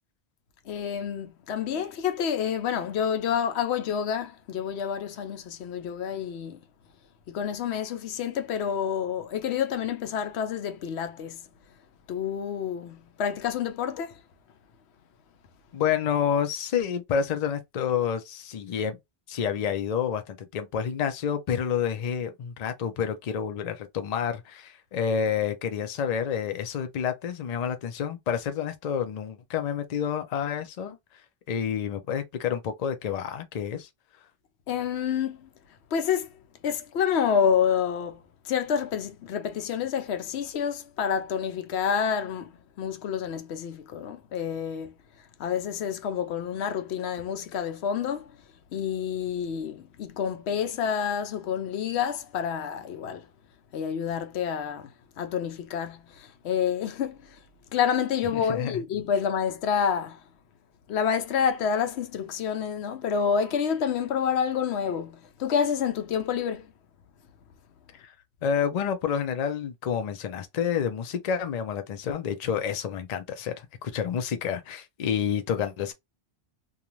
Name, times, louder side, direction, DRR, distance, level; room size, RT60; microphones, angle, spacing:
voice 1, 0.7-6.6 7.3-11.4 12.1-14.2 34.7-35.5 35.9-36.3 36.6-38.2 38.4-44.9 45.4-48.3 48.7-53.3 53.7-54.9 55.2-57.4 57.7-60.2 60.9-66.7, left 7 dB, 80° left, 0.9 m, -28 dB
voice 2, 15.7-19.0 19.3-31.0 31.5-33.9 58.3-58.7 68.0-68.1 68.4-75.9, left 7 dB, 50° left, 0.5 m, -29 dB
2.5 x 2.3 x 3.0 m
omnidirectional pair, 1.1 m